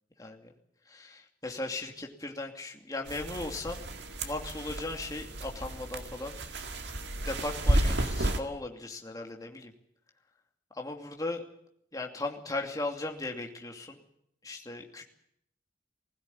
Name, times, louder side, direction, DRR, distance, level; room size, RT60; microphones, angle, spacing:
voice 1, 0.2-0.5 0.9-3.8 4.2-6.4 6.7-6.9 7.2-9.7 10.7-11.4 11.9-14.0 14.4-15.0, left 2 dB, 20° left, 2 dB, 2.6 m, -37 dB
sound 1, 3.1-8.4, right 1 dB, 65° right, 2.0 m, -32 dB
21.0 x 16.0 x 9.8 m, 0.74 s
head